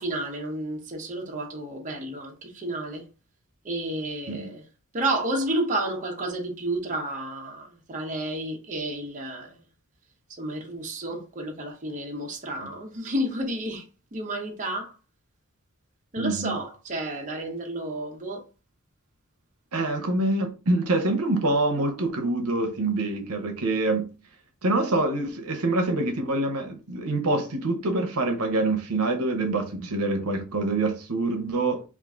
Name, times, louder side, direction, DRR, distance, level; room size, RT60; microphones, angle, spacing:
voice 1, 0.0-3.0 3.6-4.6 4.9-9.6 10.3-13.8 14.1-14.9 16.1-18.4, right 1 dB, 35° right, 0.8 m, -31 dB
voice 2, 16.2-16.6 19.7-24.1 24.6-31.8, right 2 dB, 80° right, 0.8 m, -25 dB
3.5 x 2.5 x 3.6 m
head